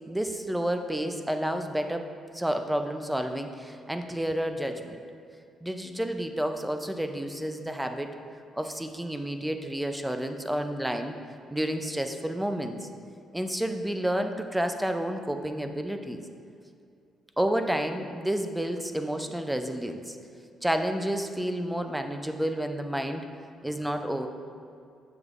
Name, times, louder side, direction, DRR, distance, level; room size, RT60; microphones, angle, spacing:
voice 1, 0.1-2.1 2.3-5.0 5.6-8.2 8.5-11.1 11.5-12.9 13.3-16.2 17.4-20.2 20.6-23.2 23.6-24.3, right 1 dB, 5° right, 6 dB, 0.4 m, -30 dB
6.8 x 6.3 x 2.5 m, 2.4 s
cardioid pair, 90°, 0 cm